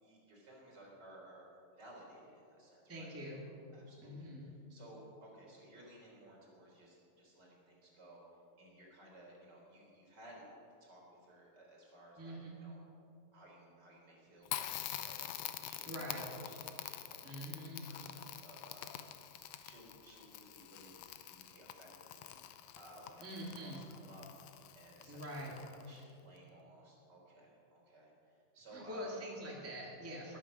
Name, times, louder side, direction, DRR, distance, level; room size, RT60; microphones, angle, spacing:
voice 1, 0.0-3.4 3.7-4.3 4.7-8.2 8.6-10.4 10.8-12.8 13.3-22.3 22.8-23.3 23.6-24.2 24.8-29.1 30.2-30.4, right 1 dB, 30° right, -3 dB, 4.1 m, -58 dB
voice 2, 2.9-3.4 4.0-4.5 12.2-12.5 15.8-16.2 17.2-17.9 23.2-23.8 25.1-25.5 28.7-30.4, equal, 5° right, -3 dB, 1.1 m, -44 dB
Crackle, 14.5-26.0, left 12 dB, 80° left, 1.5 m, -46 dB
21.0 x 9.0 x 6.2 m, 2.6 s
omnidirectional pair, 3.8 m